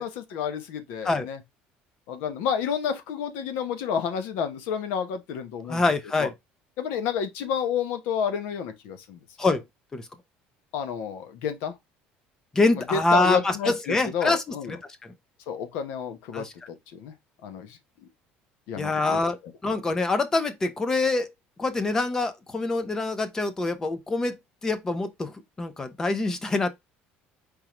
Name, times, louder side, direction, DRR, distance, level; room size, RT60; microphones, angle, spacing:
voice 1, 0.0-1.4 2.1-5.8 6.2-6.3 6.8-9.2 10.7-11.7 12.9-14.8 15.5-16.5 16.9-17.1 17.4-18.1 18.7-19.2, left 7 dB, 70° left, 1.0 m, -30 dB
voice 2, 5.7-6.3 9.4-9.6 9.9-10.1 12.5-14.8 15.0-15.1 16.3-16.5 18.8-19.4 19.6-21.3 21.6-24.4 24.6-26.7, left 3 dB, 15° left, 0.6 m, -25 dB
4.9 x 3.6 x 3.0 m
cardioid pair, 175°, 4 cm